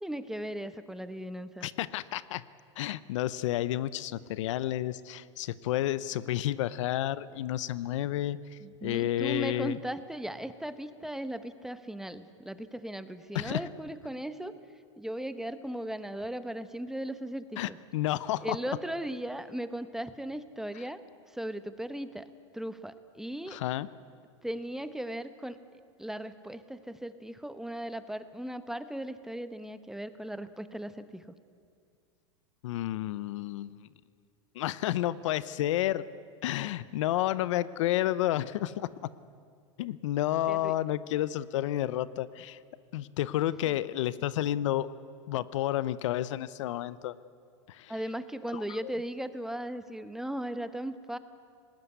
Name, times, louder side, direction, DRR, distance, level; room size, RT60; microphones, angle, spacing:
voice 1, 0.0-1.7 8.6-14.5 15.0-17.8 18.4-21.0 21.3-22.3 22.5-23.6 24.4-25.6 26.0-31.2 40.5-40.7 43.7-43.8 47.9-51.2, right 1 dB, 5° right, 12 dB, 0.9 m, -37 dB
voice 2, 1.6-2.4 2.8-9.8 13.3-13.6 17.6-18.6 23.5-23.9 32.6-33.9 34.5-36.0 36.4-39.1 39.8-42.6 42.9-44.9 45.3-47.1 47.7-47.9 48.5-48.9, left 13 dB, 75° left, 18 dB, 0.7 m, -31 dB
19.5 x 18.5 x 9.7 m, 2.2 s
supercardioid pair, 120°, 16 cm